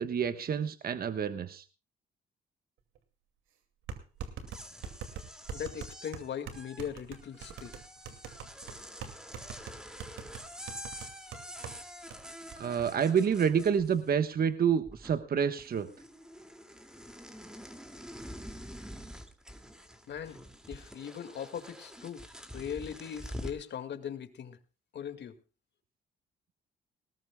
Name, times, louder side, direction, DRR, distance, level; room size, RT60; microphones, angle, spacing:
voice 1, 0.0-1.6 12.6-15.9, right 7 dB, 50° right, 10 dB, 1.3 m, -28 dB
sound 1, 3.0-3.1 3.9-11.8 12.1-12.2 12.5-12.9, right 7 dB, 85° right, 2.5 m, -43 dB
sound 2, 4.3-14.3 14.6-15.3 15.6-23.7, equal, 5° right, 2.4 m, -47 dB
voice 2, 5.5-7.7 20.1-20.4 20.7-22.3 22.5-24.6 24.9-25.3, left 8 dB, 60° left, 9 dB, 2.1 m, -39 dB
19.5 x 19.5 x 2.3 m, 0.32 s
cardioid pair, 90°, 20 cm